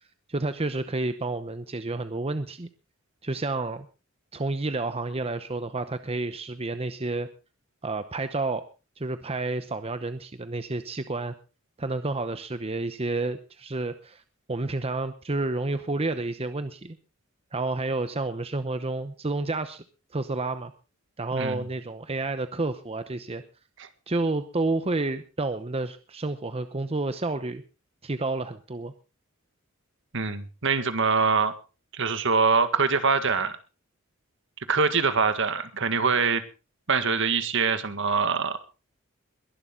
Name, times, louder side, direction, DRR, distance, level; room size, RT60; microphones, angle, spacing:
voice 1, 0.3-2.7 3.2-3.9 4.3-7.3 7.8-8.6 9.0-11.3 11.8-14.2 14.5-17.0 17.5-19.8 20.1-20.7 21.2-23.4 24.1-27.6 28.0-28.9, right 2 dB, 30° right, 10 dB, 0.8 m, -30 dB
voice 2, 21.3-21.6 23.8-23.9 30.1-31.5 31.9-33.6 34.7-36.4 36.9-38.6, right 5 dB, 60° right, 10 dB, 1.8 m, -24 dB
21.5 x 12.0 x 3.8 m, 0.32 s
head